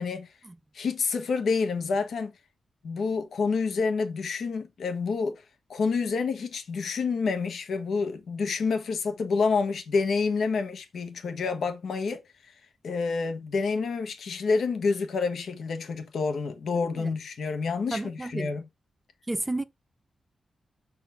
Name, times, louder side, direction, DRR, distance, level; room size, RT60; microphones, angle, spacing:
voice 1, 0.7-2.3 2.8-5.4 5.7-12.5 12.8-18.6, left 4 dB, 75° left, 1.2 m, -28 dB
voice 2, 17.9-18.5 19.3-19.6, right 2 dB, 20° right, 0.8 m, -31 dB
6.6 x 4.2 x 5.7 m
cardioid pair, 65°, 0 cm